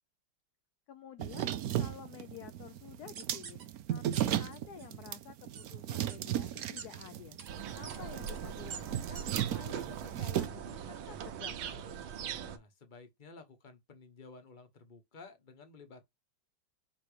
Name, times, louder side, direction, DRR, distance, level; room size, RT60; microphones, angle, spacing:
voice 1, 0.9-3.6 3.9-11.8, left 10 dB, 70° left, 0.9 m, -51 dB
sound 1, 1.2-10.5, right 11 dB, 70° right, 0.9 m, -36 dB
sound 2, 3.1-3.6 4.1-4.2 4.5-4.9 5.5-5.7 6.1-6.2 6.8-6.9 7.4-7.5 7.8-8.0 8.3-8.4 8.7-8.8 9.1-9.2 9.7-9.8, right 7 dB, 50° right, 1.3 m, -45 dB
sound 3, 7.5-12.6, right 8 dB, 90° right, 1.7 m, -41 dB
voice 2, 12.3-16.0, left 4 dB, 30° left, 1.2 m, -54 dB
6.7 x 3.0 x 5.0 m
omnidirectional pair, 2.1 m